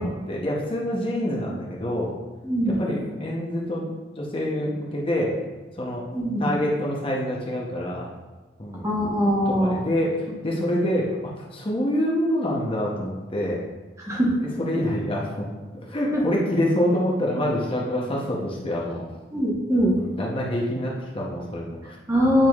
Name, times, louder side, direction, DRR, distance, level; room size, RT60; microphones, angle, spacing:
voice 1, 0.0-2.1 2.6-5.3 5.8-6.0 6.4-8.1 8.6-8.9 9.5-13.6 14.4-15.5 15.7-19.0 19.9-22.0, equal, 25° left, -3 dB, 0.7 m, -26 dB
voice 2, 2.4-2.8 6.1-6.5 8.8-9.8 14.1-14.3 16.1-16.2 19.3-19.9 22.1-22.5, equal, 15° right, -3 dB, 1.0 m, -21 dB
8.8 x 4.7 x 2.3 m, 1.3 s
head